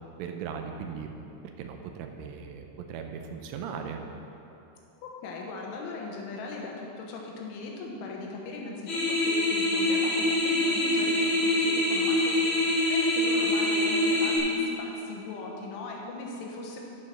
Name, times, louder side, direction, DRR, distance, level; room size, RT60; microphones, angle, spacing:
voice 1, 0.2-1.2 1.6-4.0, right 6 dB, 85° right, 4 dB, 3.3 m, -38 dB
voice 2, 5.0-12.6 12.9-16.9, left 3 dB, 80° left, -1 dB, 3.5 m, -38 dB
sound 1, 8.9-14.4, left 1 dB, 45° left, 3.3 m, -25 dB
10.5 x 7.0 x 5.7 m, 2.9 s
omnidirectional pair, 5.5 m